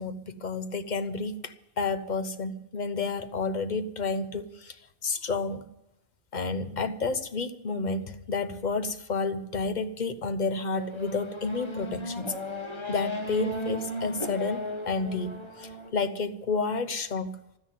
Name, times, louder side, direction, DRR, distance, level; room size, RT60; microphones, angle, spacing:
voice 1, 0.0-4.8 5.0-5.6 6.3-12.4 12.9-17.4, left 4 dB, 45° left, 11 dB, 1.0 m, -30 dB
Race car auto racing / Accelerating revving vroom, 10.7-15.9, left 1 dB, 25° left, 1.5 m, -36 dB
13.0 x 10.0 x 9.4 m, 0.86 s
omnidirectional pair, 1.0 m